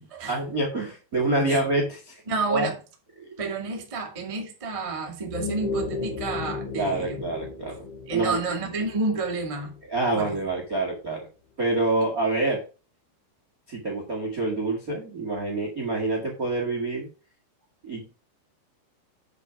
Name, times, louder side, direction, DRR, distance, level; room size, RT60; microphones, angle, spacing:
voice 1, 0.3-2.1 2.5-2.7 3.2-3.3 6.7-8.4 9.9-11.2 11.6-12.6 13.7-17.1 17.8-18.1, right 2 dB, 80° right, 0.8 m, -26 dB
voice 2, 2.3-2.8 3.4-7.2 8.1-9.7 10.1-10.4, right 3 dB, 55° right, 0.3 m, -30 dB
sound 1, 5.2-10.0, left 4 dB, 55° left, 4.3 m, -34 dB
8.3 x 5.7 x 4.9 m
omnidirectional pair, 5.4 m